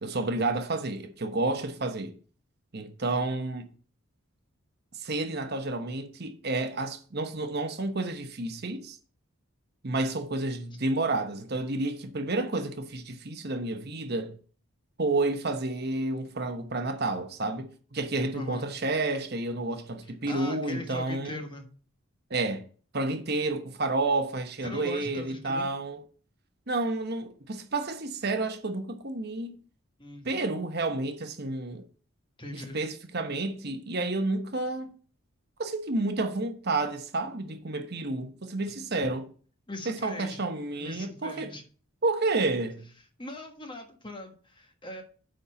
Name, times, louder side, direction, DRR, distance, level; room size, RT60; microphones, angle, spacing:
voice 1, 0.0-2.2 2.7-3.7 5.0-9.0 9.8-14.3 15.0-21.4 22.3-22.7 22.9-26.0 26.7-29.6 30.2-31.8 32.5-34.9 35.6-39.3 39.9-41.5 42.0-42.9, right 2 dB, 50° right, 1.0 m, -30 dB
voice 2, 18.3-18.7 20.0-21.7 24.6-25.7 30.0-30.3 32.4-32.8 38.7-38.8 39.7-40.4 40.8-41.6 43.2-45.0, left 2 dB, 25° left, 1.5 m, -40 dB
8.8 x 4.3 x 6.9 m
head